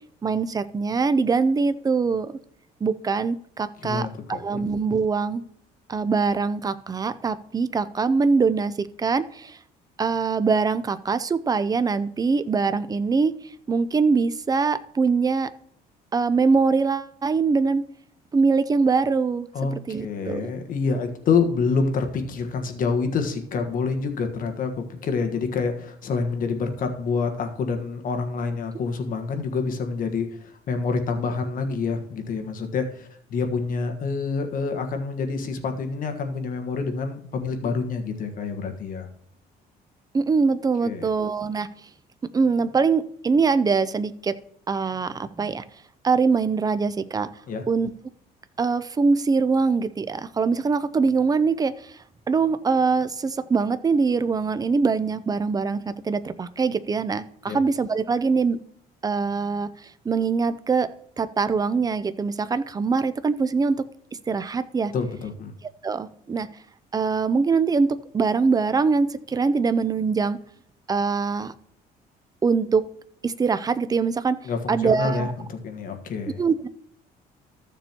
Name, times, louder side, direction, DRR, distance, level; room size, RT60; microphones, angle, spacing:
voice 1, 0.2-2.3 2.8-5.4 5.9-9.6 10.0-13.3 13.7-15.5 16.1-17.8 18.3-20.5 40.1-41.7 42.3-44.4 44.7-45.6 46.0-47.3 47.7-47.9 48.6-51.9 52.3-58.6 59.0-59.7 60.0-60.9 61.2-63.8 64.3-64.9 65.8-66.5 66.9-70.4 70.9-71.5 72.4-72.8 73.2-74.4 74.7-75.3 76.4-76.7, right 4 dB, 20° right, 13 dB, 0.6 m, -23 dB
voice 2, 3.8-4.6 19.5-39.1 40.8-41.1 47.5-47.6 57.5-57.6 64.9-65.5 74.4-76.4, left 4 dB, 55° left, 6 dB, 1.4 m, -27 dB
14.5 x 6.9 x 2.9 m, 0.68 s
cardioid pair, 110°, 17 cm